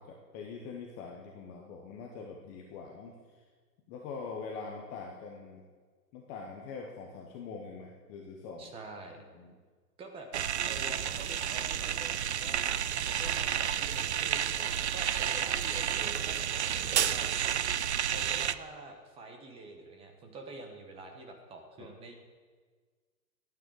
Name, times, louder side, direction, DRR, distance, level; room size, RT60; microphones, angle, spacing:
voice 1, 0.0-3.4 3.9-5.6 6.1-8.7 9.3-9.5 21.8-21.9, left 5 dB, 15° left, 0 dB, 0.7 m, -43 dB
voice 2, 8.6-9.2 10.0-10.3 10.7-17.4 18.1-22.1, right 2 dB, 10° right, 4 dB, 1.1 m, -47 dB
sound 1, 10.3-18.5, right 9 dB, 45° right, 0.4 m, -31 dB
12.0 x 9.2 x 8.1 m, 1.5 s
hypercardioid pair, 145°, 49 cm